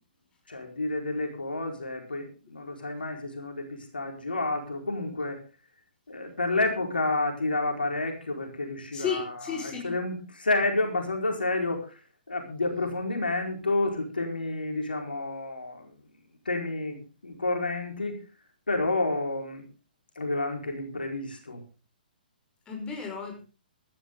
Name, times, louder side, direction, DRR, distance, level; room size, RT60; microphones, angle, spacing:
voice 1, 0.5-5.4 6.1-11.8 12.3-15.9 16.5-18.2 18.7-19.6 20.2-21.6, left 2 dB, 75° left, 3 dB, 4.6 m, -30 dB
voice 2, 8.9-10.0 22.7-23.4, left 6 dB, 15° left, 2 dB, 5.3 m, -33 dB
17.0 x 12.5 x 3.8 m, 0.32 s
figure-of-eight pair, 125°, 5 cm